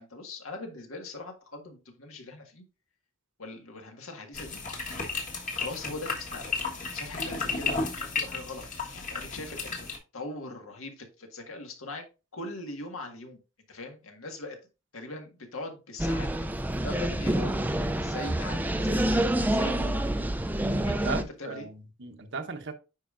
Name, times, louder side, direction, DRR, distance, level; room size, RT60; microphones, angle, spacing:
voice 1, 0.0-2.6 3.4-4.8 5.5-8.6 8.9-9.9 10.1-12.0 12.3-13.4 13.7-14.6 14.9-16.3 16.8-20.0 20.9-21.7, left 2 dB, 80° left, 1.7 m, -41 dB
sound 1, 4.3-10.0, left 4 dB, 40° left, 1.4 m, -33 dB
sound 2, 16.0-21.2, right 1 dB, 10° right, 0.4 m, -27 dB
voice 2, 20.9-22.7, right 4 dB, 55° right, 0.9 m, -37 dB
9.0 x 5.1 x 2.5 m
head